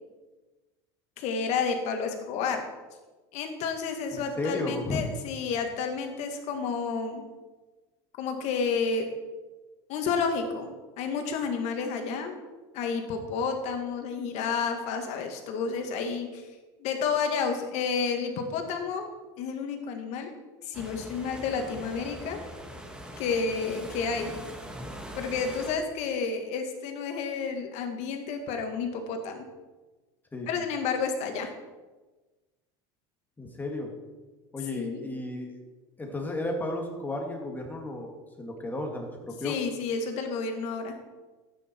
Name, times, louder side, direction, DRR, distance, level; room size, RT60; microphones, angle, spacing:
voice 1, 1.2-2.7 3.3-7.3 8.2-9.1 9.9-12.4 12.7-16.5 16.8-19.1 19.4-20.3 20.6-22.4 23.2-24.3 25.2-29.4 30.5-31.5 34.7-35.0 39.4-41.0, left 5 dB, 60° left, 5 dB, 2.0 m, -30 dB
voice 2, 4.1-5.1 30.3-30.5 33.4-33.9 34.5-35.5 36.0-39.6, left 2 dB, 15° left, 2 dB, 2.2 m, -33 dB
sound 1, 20.7-25.7, equal, 5° right, 1.7 m, -42 dB
12.5 x 9.2 x 4.6 m, 1.2 s
supercardioid pair, 105°, 13 cm